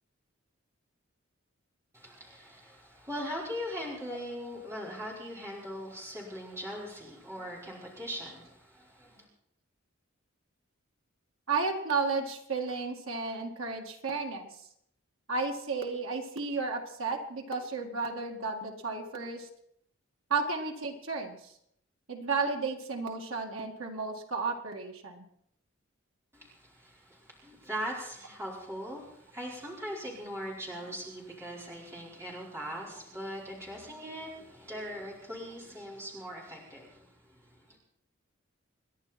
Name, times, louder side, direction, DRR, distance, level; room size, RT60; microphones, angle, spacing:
voice 1, 2.0-2.7 3.1-8.5 9.1-9.2 27.4-29.0 29.3-36.9, equal, 15° right, -5 dB, 4.7 m, -39 dB
voice 2, 11.5-14.5 15.3-19.5 20.3-21.5 22.1-25.2, right 4 dB, 80° right, 2 dB, 2.2 m, -33 dB
28.0 x 11.0 x 4.4 m, 0.72 s
head